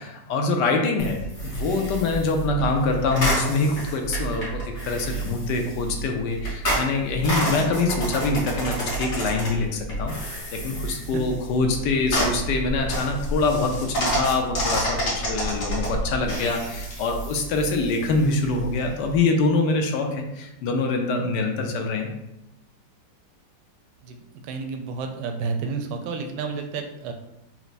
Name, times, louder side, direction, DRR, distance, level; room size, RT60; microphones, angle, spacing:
voice 1, 0.0-22.1, left 3 dB, 75° left, 3 dB, 1.1 m, -25 dB
sound 1, 1.0-19.2, right 1 dB, 50° left, 1.5 m, -29 dB
voice 2, 24.0-27.1, right 4 dB, 75° right, 5 dB, 1.2 m, -31 dB
4.5 x 2.1 x 4.0 m, 0.87 s
omnidirectional pair, 2.0 m